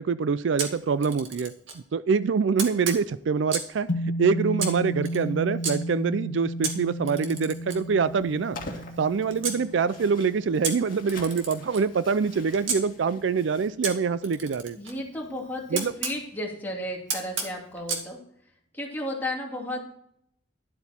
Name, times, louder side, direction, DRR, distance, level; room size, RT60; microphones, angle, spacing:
voice 1, 0.0-3.9 4.2-8.6 9.0-14.8 15.7-15.9, right 5 dB, 70° right, 16 dB, 0.4 m, -25 dB
Camera, 0.6-1.8 2.6-3.8 4.6-5.7 6.6-9.6 10.6-12.8 13.8-16.2 17.1-18.1, right 5 dB, 90° right, 2.2 m, -34 dB
sound 1, 3.9-12.3, right 1 dB, 65° left, 1.1 m, -33 dB
sound 2, 8.0-13.7, left 2 dB, 50° left, 2.0 m, -45 dB
voice 2, 14.7-18.2 18.7-19.8, left 1 dB, 10° left, -2 dB, 2.6 m, -33 dB
12.0 x 8.1 x 4.3 m, 0.69 s
head